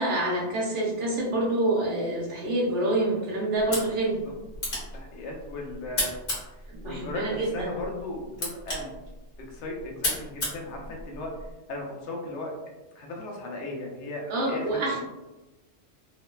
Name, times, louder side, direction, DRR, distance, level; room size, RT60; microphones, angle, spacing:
voice 1, 0.0-4.2 6.7-7.7 14.3-15.0, right 1 dB, 80° right, -2 dB, 1.0 m, -27 dB
sound 1, 3.6-11.5, left 1 dB, 60° left, 1.3 m, -35 dB
voice 2, 4.9-6.1 6.8-8.9 9.4-11.3 11.7-12.5 13.0-14.8, left 2 dB, 75° left, 0 dB, 0.9 m, -36 dB
3.0 x 2.1 x 2.2 m, 1.0 s
omnidirectional pair, 1.2 m